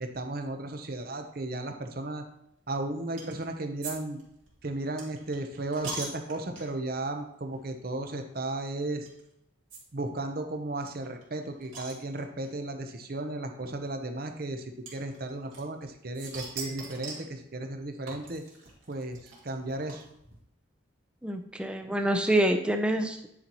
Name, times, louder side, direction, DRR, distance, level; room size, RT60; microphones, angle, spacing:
voice 1, 0.0-2.2 2.7-4.2 4.6-9.1 9.9-18.4 18.9-20.0, right 2 dB, 45° right, 6 dB, 0.7 m, -35 dB
sound 1, 3.2-3.4 3.8-6.9 7.5-7.7 7.9-8.0 9.0-9.2 9.7-9.8 10.1-10.2 10.3-10.4 10.9-12.5 13.4-13.5 14.8-15.8 16.1-17.3 18.1-20.3, right 3 dB, 75° right, 2.4 m, -42 dB
voice 2, 21.2-23.3, right 1 dB, 5° right, 5 dB, 0.5 m, -26 dB
9.8 x 5.4 x 2.9 m, 0.79 s
head